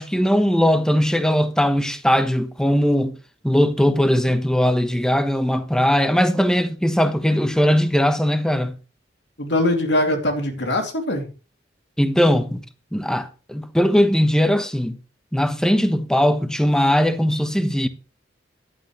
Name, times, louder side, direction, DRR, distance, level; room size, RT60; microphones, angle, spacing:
voice 1, 0.0-3.2 3.4-8.8 12.0-12.6 12.9-15.0 15.3-17.9, equal, 5° left, 1.1 m, -19 dB
voice 2, 9.4-11.3, left 1 dB, 70° left, 2.7 m, -22 dB
15.5 x 11.0 x 3.2 m
head